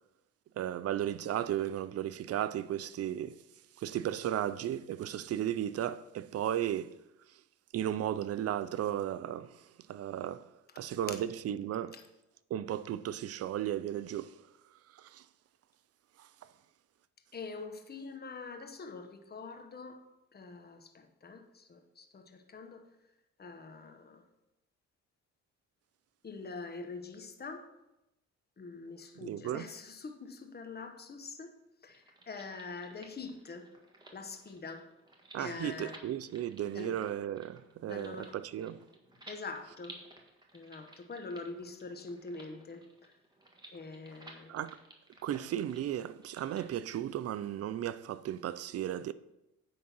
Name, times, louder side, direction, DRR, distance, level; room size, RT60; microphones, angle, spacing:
voice 1, 0.6-3.4 3.8-7.0 7.7-10.5 10.8-12.0 12.5-14.4 14.9-15.2 16.2-16.5 29.2-29.7 35.3-38.8 44.5-44.8 45.2-49.1, right 11 dB, 55° right, 0.5 m, -35 dB
voice 2, 17.3-20.0 20.3-22.9 23.4-24.2 26.2-27.7 28.6-31.6 31.8-33.7 34.1-34.9 35.4-36.0 36.7-36.9 37.8-38.3 39.3-40.0 40.5-43.1 43.7-44.6, left 4 dB, 30° left, 1.1 m, -44 dB
sound 1, 31.9-46.7, right 1 dB, 15° right, 1.7 m, -56 dB
9.4 x 3.8 x 6.1 m
cardioid pair, 90°, 30 cm